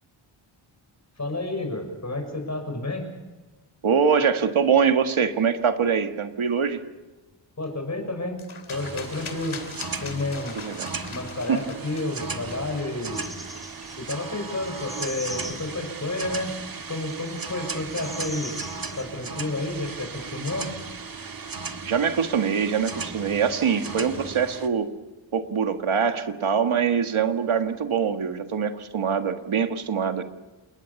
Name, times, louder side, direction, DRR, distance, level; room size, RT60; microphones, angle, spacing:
voice 1, 1.2-3.1 7.6-8.4 8.7-9.6 10.0-10.6 11.1-13.3 14.0-16.5 16.9-18.6 19.0-20.7, left 2 dB, 35° left, 4 dB, 6.4 m, -30 dB
voice 2, 3.8-6.8 10.5-11.0 11.5-11.6 21.8-24.9 25.3-30.2, right 6 dB, 75° right, 7 dB, 1.7 m, -23 dB
sound 1, 8.4-13.6, left 5 dB, 75° left, 3.0 m, -42 dB
sound 2, 8.7-24.7, right 4 dB, 45° right, 1.7 m, -36 dB
sound 3, 13.1-19.0, equal, ahead, 3.7 m, -42 dB
29.0 x 20.0 x 7.1 m, 1.2 s
wide cardioid pair, 110°, 50 cm